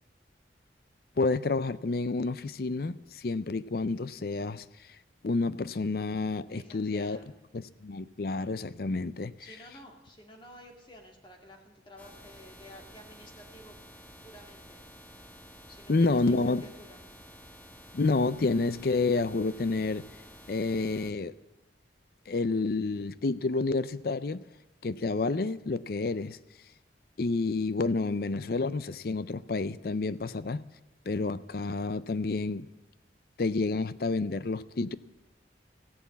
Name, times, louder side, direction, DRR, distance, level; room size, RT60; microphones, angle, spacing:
voice 1, 1.2-4.9 5.2-7.2 7.5-9.3 15.9-16.7 17.9-20.1 20.5-21.3 22.3-24.4 24.8-26.4 27.2-30.6 31.1-32.7 33.4-35.0, left 3 dB, 55° left, 0.5 m, -29 dB
voice 2, 6.5-7.3 9.4-13.8 14.2-14.8 15.7-17.0, equal, 25° left, 2.0 m, -51 dB
sound 1, 12.0-21.1, equal, 10° left, 1.5 m, -51 dB
15.5 x 11.5 x 8.3 m
head